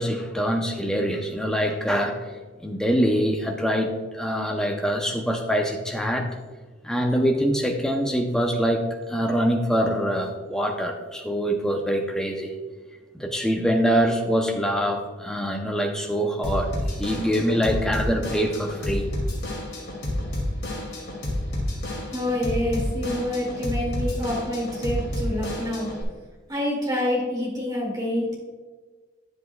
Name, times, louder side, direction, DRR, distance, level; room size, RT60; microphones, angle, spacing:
voice 1, 0.0-2.2 2.6-6.3 6.8-12.5 13.1-19.1, equal, 5° left, 2 dB, 0.6 m, -24 dB
Drum kit / Drum, 16.4-26.0, left 1 dB, 55° left, 2.4 m, -30 dB
voice 2, 22.1-25.9 26.5-28.3, left 1 dB, 20° right, -4 dB, 2.2 m, -27 dB
9.8 x 8.0 x 2.3 m, 1.3 s
head